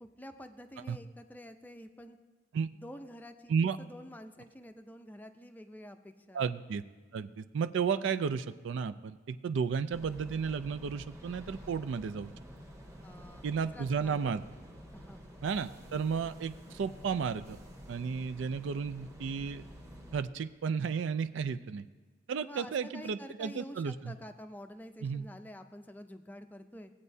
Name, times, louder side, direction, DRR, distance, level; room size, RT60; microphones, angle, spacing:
voice 1, 0.0-2.2 2.8-6.4 13.0-13.5 13.7-14.4 14.9-15.3 22.4-26.9, left 1 dB, 10° left, 7 dB, 0.5 m, -48 dB
voice 2, 6.3-6.8 7.1-12.3 13.4-14.4 15.4-17.6 17.9-19.6 20.1-21.9 22.3-24.1 25.0-25.3, right 6 dB, 75° right, 12 dB, 0.4 m, -33 dB
sound 1, 9.9-20.2, equal, 15° right, 1.2 m, -50 dB
16.5 x 8.5 x 2.7 m, 1.4 s
head